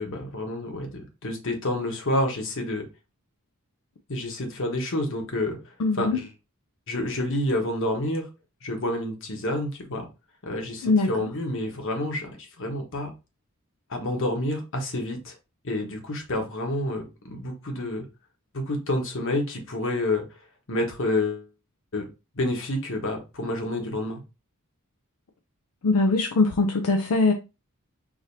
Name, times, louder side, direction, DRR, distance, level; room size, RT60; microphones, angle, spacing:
voice 1, 0.0-2.9 4.1-6.3 6.9-8.3 8.6-10.1 10.4-13.1 13.9-15.3 15.6-18.0 18.5-20.2 20.7-21.5 21.9-22.0 22.3-24.2, left 1 dB, 60° left, 1.2 m, -29 dB
voice 2, 5.8-6.2 10.8-11.1 25.8-27.3, left 3 dB, 85° left, 0.5 m, -21 dB
4.9 x 2.6 x 2.6 m
head